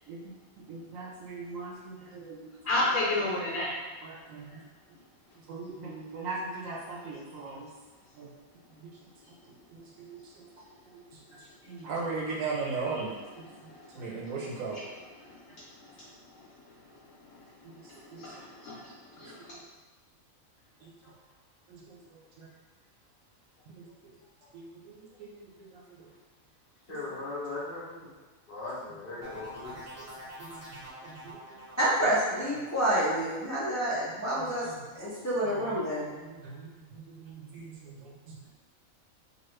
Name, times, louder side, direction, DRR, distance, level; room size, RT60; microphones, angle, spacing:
voice 1, 0.7-2.4 3.4-3.6 4.0-4.6 5.5-7.7 8.2-8.3 8.7-8.9 9.7-10.5 10.9-11.0 11.4-13.4 13.9-14.8 17.6-17.7 18.1-18.3 19.2-19.3 20.8-20.9 21.7-22.0 22.4-22.5 23.7-23.8 24.5-26.1 29.7-30.1 30.4-31.6 34.4-34.8 36.1-38.5, right 4 dB, 75° right, -3 dB, 1.0 m, -39 dB
voice 2, 2.7-3.7 4.5-4.6 12.9-13.0 13.4-14.3 14.7-14.8 15.2-16.1 16.3-16.5 17.3-19.5, left 2 dB, 70° left, -7 dB, 1.0 m, -34 dB
voice 3, 26.9-28.2 28.5-30.0, left 3 dB, 50° left, -6 dB, 0.8 m, -39 dB
sound 1, 29.2-34.8 35.2-35.7, equal, 10° right, 0.9 m, -48 dB
voice 4, 31.8-34.7 35.0-36.1, right 1 dB, 30° left, -9 dB, 0.3 m, -28 dB
3.0 x 2.3 x 3.1 m, 1.2 s
omnidirectional pair, 1.4 m